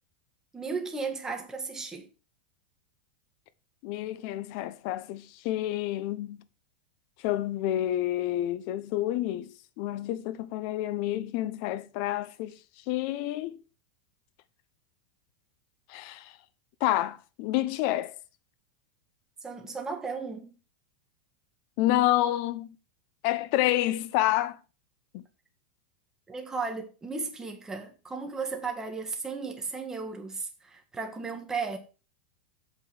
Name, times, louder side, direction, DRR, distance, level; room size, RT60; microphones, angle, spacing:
voice 1, 0.5-2.1 19.4-20.5 26.3-31.8, right 4 dB, 10° right, 1.8 m, -35 dB
voice 2, 3.8-6.4 7.2-12.6 12.9-13.6 15.9-16.3 16.8-18.1 21.8-22.7 23.2-24.6 25.1-25.2, left 14 dB, 50° left, 0.9 m, -29 dB
8.3 x 5.5 x 6.2 m
supercardioid pair, 140°, 5 cm